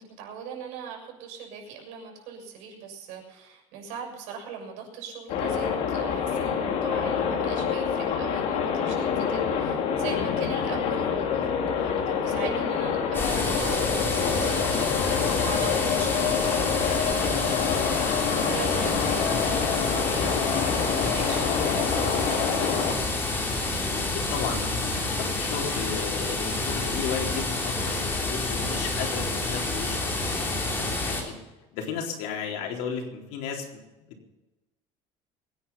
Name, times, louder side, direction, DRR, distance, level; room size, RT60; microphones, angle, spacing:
voice 1, 0.0-21.4 21.7-23.1, right 5 dB, 75° right, 1 dB, 6.7 m, -40 dB
sound 1, 5.3-22.9, left 7 dB, 60° left, 2.7 m, -27 dB
sound 2, 13.1-31.2, left 2 dB, 15° left, 3.2 m, -28 dB
voice 2, 23.9-31.3 31.7-33.8 34.1-34.2, left 6 dB, 80° left, 1 dB, 4.0 m, -35 dB
23.5 x 9.7 x 5.7 m, 1.1 s
cardioid pair, 170°, 13 cm